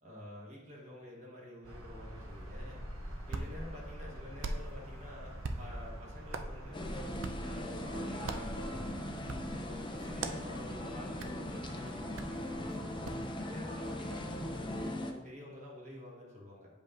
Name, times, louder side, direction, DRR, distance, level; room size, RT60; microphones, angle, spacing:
voice 1, 0.0-2.8 3.3-6.8 7.4-9.0 9.5-12.8 13.4-16.7, left 1 dB, 35° right, -3 dB, 1.2 m, -49 dB
sound 1, 1.6-14.8, equal, 85° right, 0.9 m, -46 dB
Hands, 2.9-13.3, right 3 dB, 70° right, 0.4 m, -45 dB
sound 2, 6.7-15.1, left 1 dB, 25° left, 0.5 m, -40 dB
7.7 x 5.3 x 2.5 m, 1.1 s
head